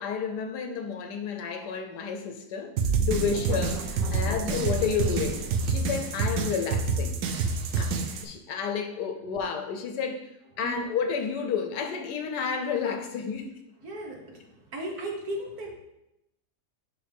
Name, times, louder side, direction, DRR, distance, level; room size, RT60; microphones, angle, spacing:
voice 1, 0.0-2.7 3.1-7.2 7.8-10.3 10.6-13.5, left 6 dB, 75° left, 5 dB, 1.3 m, -31 dB
sound 1, 2.8-8.2, right 4 dB, 85° right, 1.4 m, -27 dB
voice 2, 13.8-15.7, right 1 dB, 60° right, 0 dB, 1.6 m, -36 dB
10.5 x 3.8 x 3.4 m, 0.87 s
omnidirectional pair, 1.8 m